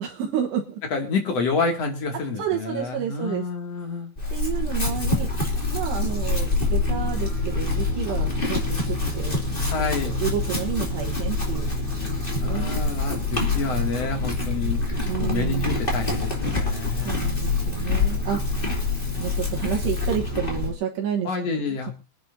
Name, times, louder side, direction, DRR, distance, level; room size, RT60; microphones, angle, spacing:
voice 1, 0.0-0.8 2.4-3.5 4.3-5.3 5.7-9.7 10.2-12.7 15.1-15.7 17.0-18.7 19.2-21.6, right 9 dB, 75° right, 0 dB, 3.3 m, -30 dB
voice 2, 0.9-4.1 9.7-10.1 12.4-14.8 15.2-17.2 21.2-21.9, left 4 dB, 45° left, 3 dB, 2.7 m, -28 dB
Chewing mastication / Livestock farm animals working animals, 4.2-20.7, left 3 dB, 15° left, 1.9 m, -26 dB
24.5 x 10.5 x 2.7 m, 0.30 s
omnidirectional pair, 5.1 m